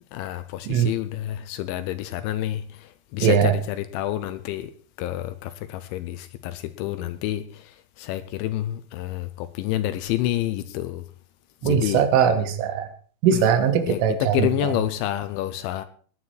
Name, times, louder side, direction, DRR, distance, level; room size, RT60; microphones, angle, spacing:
voice 1, 0.1-4.7 5.0-11.0 11.6-12.0 13.3-13.4 13.9-15.9, left 13 dB, 80° left, 3.1 m, -28 dB
voice 2, 3.2-3.5 11.6-12.9 13.2-14.7, right 8 dB, 85° right, 4.0 m, -20 dB
19.0 x 10.0 x 4.5 m
omnidirectional pair, 5.5 m